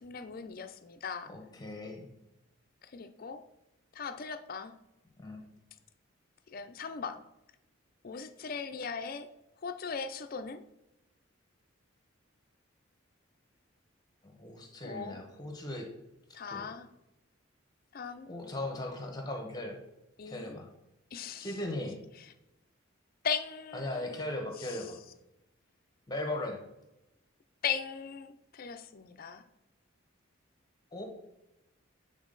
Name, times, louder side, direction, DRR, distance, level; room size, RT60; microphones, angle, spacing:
voice 1, 0.0-1.3 2.8-3.4 3.9-4.7 6.5-7.2 8.0-9.3 9.6-10.6 14.8-15.2 16.3-16.9 17.9-18.3 20.2-20.6 21.1-21.5 23.2-24.8 27.6-29.4, left 6 dB, 45° left, 10 dB, 0.4 m, -38 dB
voice 2, 1.3-2.1 5.2-5.4 14.2-15.9 16.3-16.7 18.3-19.8 20.2-20.7 21.4-22.0 23.7-25.0 26.1-26.6 30.9-31.0, left 1 dB, 20° left, 2 dB, 1.0 m, -38 dB
8.3 x 3.9 x 3.9 m, 0.92 s
head